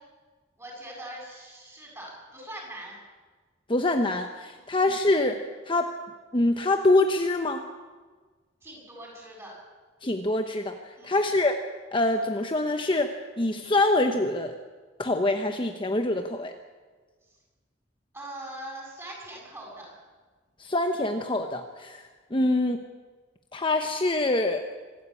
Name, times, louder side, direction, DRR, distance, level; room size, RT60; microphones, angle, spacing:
voice 1, 0.6-3.0 4.5-4.7 8.6-9.5 11.0-11.2 18.1-20.0, right 1 dB, 15° right, -2 dB, 7.5 m, -42 dB
voice 2, 3.7-5.9 6.3-7.6 10.0-11.6 11.9-14.6 15.0-16.5 20.6-22.0 22.3-22.8 23.5-24.6, left 2 dB, 25° left, 5 dB, 1.0 m, -25 dB
25.5 x 13.5 x 8.4 m, 1.4 s
head